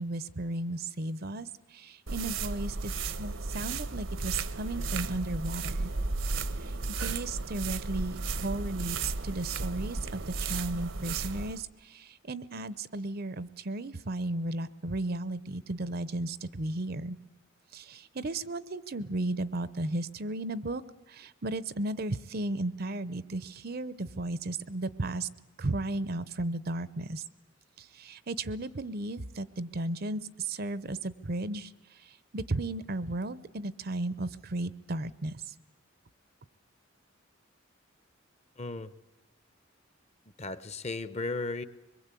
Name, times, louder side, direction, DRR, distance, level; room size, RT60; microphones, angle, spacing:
voice 1, 0.0-5.9 6.9-17.2 17.7-20.8 21.1-25.3 25.6-27.2 27.8-31.7 32.3-35.4, right 2 dB, 50° right, 17 dB, 0.7 m, -35 dB
sound 1, 2.1-11.6, right 3 dB, 70° right, 1.0 m, -34 dB
voice 2, 38.6-38.9 40.4-41.6, left 3 dB, 35° left, 14 dB, 0.8 m, -35 dB
23.5 x 21.5 x 8.3 m, 1.1 s
head